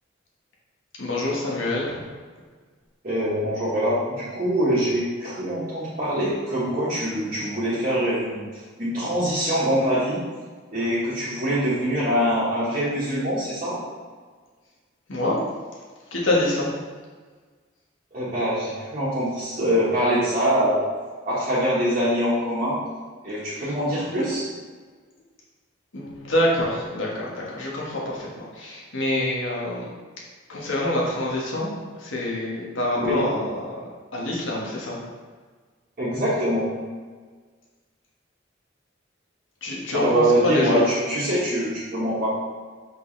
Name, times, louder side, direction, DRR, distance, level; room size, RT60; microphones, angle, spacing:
voice 1, 1.0-2.0 15.1-15.4 16.1-16.7 25.9-28.3 28.5-29.8 30.5-31.7 32.0-33.8 34.1-35.0 39.6-40.8, left 1 dB, 85° left, -4 dB, 1.5 m, -25 dB
voice 2, 3.0-8.4 8.8-10.2 10.7-13.8 18.1-20.8 21.2-22.8 23.2-24.5 32.9-33.2 36.0-36.7 39.9-42.3, equal, 40° right, -12 dB, 1.5 m, -24 dB
6.2 x 5.2 x 3.3 m, 1.5 s
head